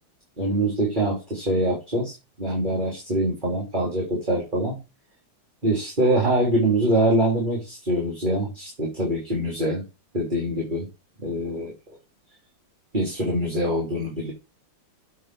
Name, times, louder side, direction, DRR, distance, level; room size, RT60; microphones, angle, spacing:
voice 1, 0.4-4.8 5.6-9.8 10.1-10.9 11.2-11.7 12.9-14.3, right 1 dB, 20° right, -3 dB, 3.3 m, -24 dB
8.3 x 4.8 x 6.1 m, 0.28 s
omnidirectional pair, 2.3 m